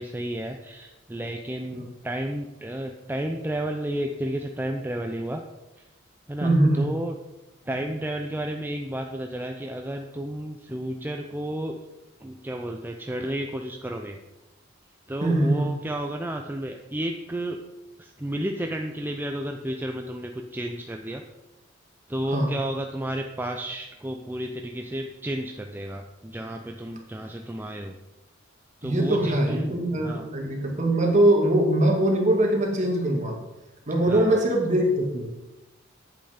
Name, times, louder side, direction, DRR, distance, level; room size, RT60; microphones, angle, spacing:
voice 1, 0.0-5.4 5.8-5.9 6.3-7.2 7.7-11.8 12.2-14.2 15.1-17.6 18.0-21.2 22.1-27.9 28.8-30.3 34.1-34.4, right 1 dB, 10° right, 3 dB, 0.5 m, -32 dB
voice 2, 6.4-6.9 7.7-7.8 15.2-15.7 22.3-22.5 28.8-33.4 33.9-35.3, right 1 dB, 35° right, 1 dB, 2.0 m, -22 dB
8.8 x 7.9 x 5.1 m, 1.0 s
head